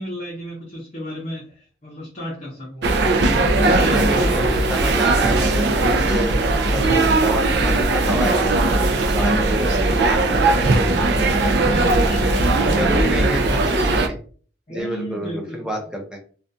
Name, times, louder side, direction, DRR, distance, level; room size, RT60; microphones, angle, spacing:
voice 1, 0.0-2.9 3.5-4.3 11.6-13.2 14.7-15.7, equal, 40° left, -5 dB, 0.7 m, -33 dB
sound 1, 2.8-14.1, right 2 dB, 65° right, 0.4 m, -18 dB
voice 2, 3.7-8.5 9.1-10.9 12.7-14.2 14.7-16.2, equal, 5° right, 0 dB, 0.6 m, -28 dB
2.4 x 2.3 x 2.5 m, 0.41 s
head